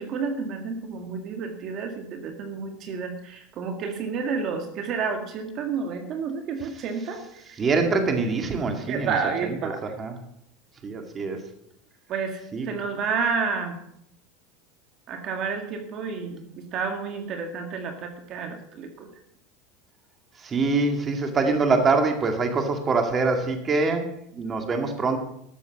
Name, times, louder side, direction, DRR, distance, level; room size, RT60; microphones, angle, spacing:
voice 1, 0.0-7.6 8.9-9.8 12.1-13.8 15.1-19.1, right 5 dB, 45° right, 5 dB, 1.9 m, -30 dB
voice 2, 7.6-9.2 9.6-10.1 10.8-11.4 12.5-12.7 20.4-24.1 24.3-25.2, right 3 dB, 25° right, 5 dB, 2.1 m, -24 dB
13.0 x 7.0 x 7.3 m, 0.74 s
supercardioid pair, 120°, 0 cm